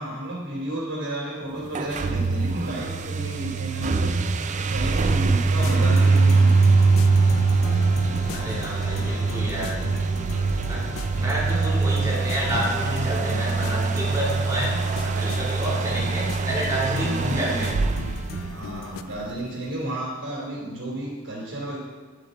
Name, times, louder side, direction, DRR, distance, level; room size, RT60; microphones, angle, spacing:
voice 1, 0.0-4.2 4.5-6.5 8.9-9.1 16.9-17.7 18.5-21.8, right 1 dB, 65° right, -4 dB, 2.9 m, -32 dB
sound 1, 1.7-19.2, right 4 dB, 35° right, 0.4 m, -23 dB
sound 2, 5.6-19.0, left 6 dB, 70° left, 0.4 m, -37 dB
voice 2, 8.3-9.9 10.7-17.7, equal, 15° right, -6 dB, 2.3 m, -29 dB
10.0 x 5.6 x 4.1 m, 1.4 s
head